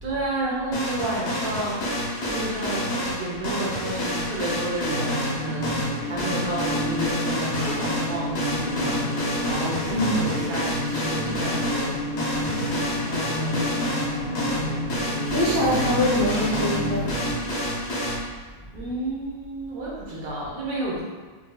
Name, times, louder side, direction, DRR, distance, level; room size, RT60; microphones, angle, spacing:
voice 1, 0.0-12.0 12.3-13.8 18.7-21.0, right 1 dB, 80° right, -6 dB, 1.4 m, -31 dB
sound 1, 0.7-18.2, equal, 55° left, 0.9 m, -29 dB
sound 2, 4.8-17.4, left 1 dB, 75° left, 1.0 m, -30 dB
voice 2, 9.9-10.2 15.3-17.1, left 1 dB, 25° right, -7 dB, 0.5 m, -24 dB
4.4 x 2.6 x 2.3 m, 1.4 s
omnidirectional pair, 1.5 m